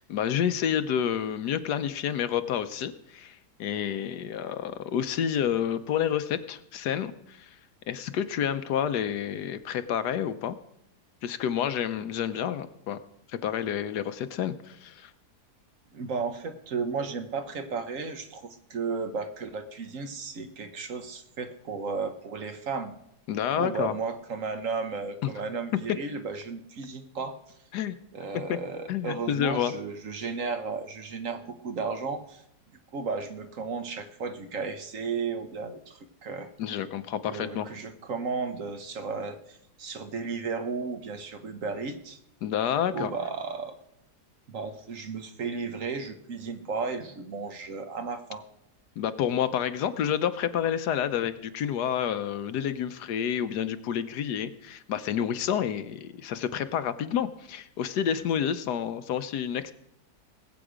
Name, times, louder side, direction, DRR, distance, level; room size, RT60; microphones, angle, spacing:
voice 1, 0.0-7.5 7.9-10.6 11.2-13.0 13.3-15.1 23.3-23.9 25.2-25.3 27.7-27.9 28.3-28.6 28.9-29.7 36.6-37.7 42.4-43.1 49.0-59.7, left 9 dB, 80° left, 12 dB, 1.3 m, -29 dB
voice 2, 15.9-22.9 23.6-27.4 28.1-32.4 32.9-36.5 37.3-42.2 42.9-43.8 44.5-48.4, right 4 dB, 55° right, 8 dB, 1.3 m, -34 dB
20.0 x 8.0 x 5.0 m, 0.78 s
omnidirectional pair, 1.7 m